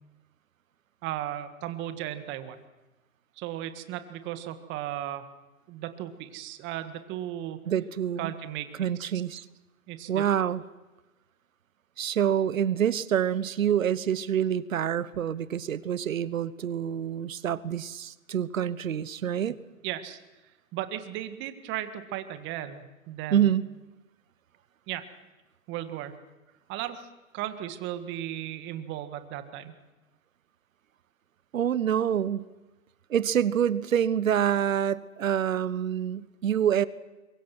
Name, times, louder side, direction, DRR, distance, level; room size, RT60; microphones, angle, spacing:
voice 1, 1.0-2.6 3.4-5.3 5.7-7.6 8.2-8.8 9.9-10.2 19.8-20.2 20.7-23.5 24.9-25.1 25.7-26.2 26.7-27.0 27.3-29.8, right 12 dB, 25° right, 9 dB, 1.8 m, -35 dB
voice 2, 7.7-8.3 8.8-9.4 10.1-10.6 12.0-19.6 23.3-23.7 31.5-32.5 33.1-36.9, right 9 dB, 70° right, 18 dB, 1.1 m, -26 dB
25.0 x 23.0 x 6.1 m, 1.1 s
hypercardioid pair, 125°, 41 cm